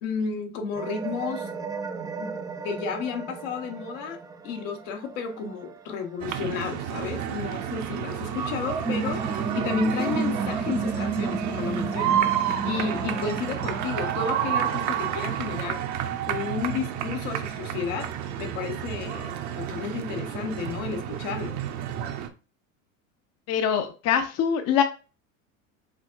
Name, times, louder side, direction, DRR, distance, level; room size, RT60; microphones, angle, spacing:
voice 1, 0.0-1.5 2.2-4.2 4.4-15.8 16.3-21.6, left 6 dB, 65° left, 1.0 m, -32 dB
sound 1, 0.7-6.8 7.2-15.3, right 4 dB, 10° right, 0.3 m, -34 dB
sound 2, 6.2-22.3, right 10 dB, 45° right, 0.8 m, -30 dB
voice 2, 23.5-24.8, left 8 dB, 40° left, 0.6 m, -23 dB
5.0 x 3.5 x 2.5 m
hypercardioid pair, 80°, 41 cm